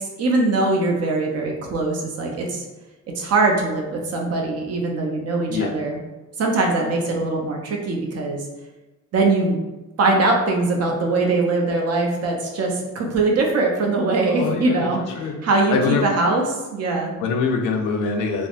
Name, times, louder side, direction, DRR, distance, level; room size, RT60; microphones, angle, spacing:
voice 1, 0.0-2.6 3.2-6.0 6.4-8.4 9.1-9.6 10.0-15.8 16.0-16.4 16.7-17.1, right 3 dB, 55° right, 0 dB, 0.7 m, -21 dB
voice 2, 14.3-14.9 15.2-15.4 15.7-16.0 17.2-18.5, left 5 dB, 90° left, 3 dB, 0.5 m, -23 dB
3.3 x 2.1 x 2.4 m, 1.1 s
cardioid pair, 90°, 30 cm